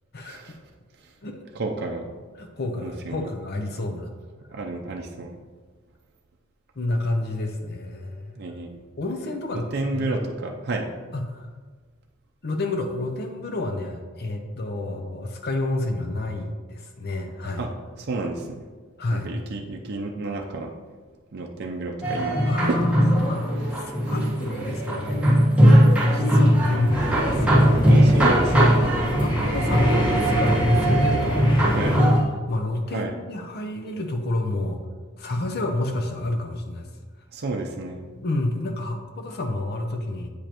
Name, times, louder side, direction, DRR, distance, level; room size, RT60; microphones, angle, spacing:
voice 1, 0.2-0.6 1.5-2.1 2.8-3.3 4.5-5.4 8.3-8.8 9.5-10.9 17.6-17.7 18.0-18.6 19.1-20.7 21.3-22.9 24.0-24.1 27.8-28.9 31.7-32.0 32.9-33.1 37.3-38.0, right 2 dB, 50° right, 1 dB, 0.5 m, -31 dB
voice 2, 2.4-4.1 6.8-8.4 9.0-9.7 9.9-10.2 11.1-11.5 12.4-17.6 19.0-19.3 22.4-25.4 25.8-28.4 28.8-31.9 32.5-34.8 35.2-36.9 38.2-40.3, left 2 dB, 50° left, 4 dB, 0.6 m, -29 dB
sound 1, 22.0-32.2, equal, 5° right, 1.3 m, -20 dB
sound 2, 26.9-31.9, equal, 25° left, 1.3 m, -26 dB
8.3 x 5.1 x 3.0 m, 1.4 s
head